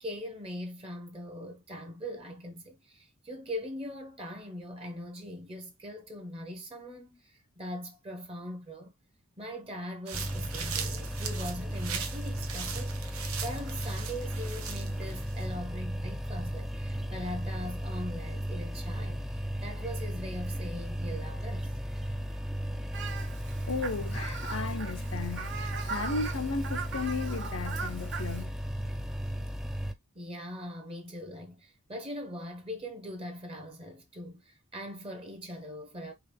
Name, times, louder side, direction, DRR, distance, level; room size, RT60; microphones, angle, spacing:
voice 1, 0.0-8.9 9.4-21.7 30.1-36.1, equal, 30° right, 1.0 m, -41 dB
sound 1, 10.1-29.9, equal, ahead, 0.4 m, -35 dB
sound 2, 10.1-15.5, right 7 dB, 85° right, 1.0 m, -40 dB
Fowl, 22.9-28.4, right 5 dB, 55° right, 1.0 m, -40 dB
voice 2, 23.7-28.7, left 4 dB, 70° left, 0.6 m, -35 dB
4.8 x 3.0 x 3.4 m
head